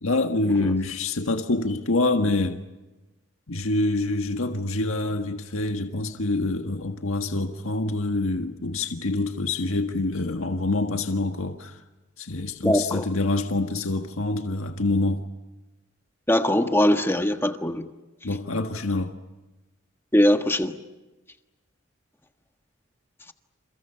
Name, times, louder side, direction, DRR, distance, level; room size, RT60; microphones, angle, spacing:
voice 1, 0.0-2.6 3.5-11.8 12.2-15.2 18.2-19.1, left 2 dB, 85° left, 1.6 m, -26 dB
voice 2, 12.6-13.0 16.3-17.9 20.1-20.7, left 1 dB, 10° left, 1.5 m, -21 dB
29.5 x 29.5 x 5.7 m
head